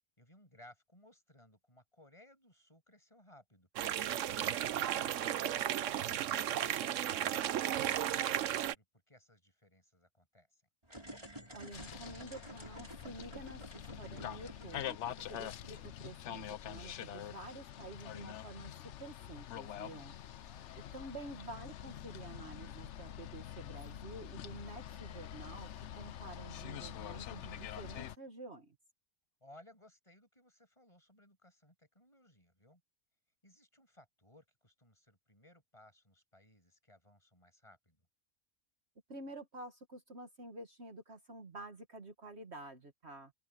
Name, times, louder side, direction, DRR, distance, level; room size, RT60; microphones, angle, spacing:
voice 1, 0.2-5.4 6.3-10.6 20.4-21.0 29.4-32.8 33.4-38.1, left 1 dB, 20° left, 7.0 m, -62 dB
sound 1, 3.8-8.7, right 11 dB, 70° right, 1.0 m, -34 dB
sound 2, 10.8-16.7, right 1 dB, 20° right, 6.5 m, -52 dB
voice 2, 11.5-15.0 15.3-18.7 19.0-20.1 20.9-28.8 39.1-43.3, right 2 dB, 55° right, 2.0 m, -49 dB
sound 3, 11.7-28.2, left 11 dB, 65° left, 0.9 m, -46 dB
open air
omnidirectional pair, 1.4 m